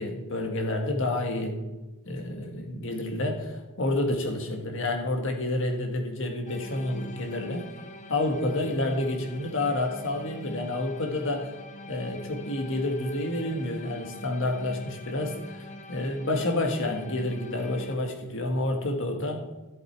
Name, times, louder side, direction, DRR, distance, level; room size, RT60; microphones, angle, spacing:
voice 1, 0.0-1.6 2.1-7.7 8.1-11.5 11.9-19.4, left 2 dB, 65° left, 3 dB, 1.8 m, -29 dB
sound 1, 6.5-18.0, left 2 dB, 35° left, 0.9 m, -44 dB
14.0 x 7.8 x 4.7 m, 1.1 s
head